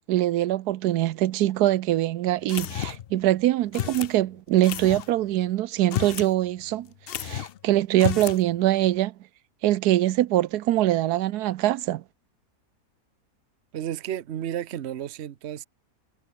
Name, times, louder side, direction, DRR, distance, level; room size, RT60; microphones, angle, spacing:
voice 1, 0.1-6.9 7.1-9.1 9.6-12.0, right 14 dB, 85° right, 1.2 m, -23 dB
sound 1, 2.5-3.1 3.7-4.1 4.6-5.1 5.8-6.3 6.6-6.7 7.1-7.6 7.9-8.4, left 11 dB, 75° left, 0.5 m, -31 dB
voice 2, 13.7-15.6, right 10 dB, 50° right, 1.0 m, -32 dB
omnidirectional pair, 1.6 m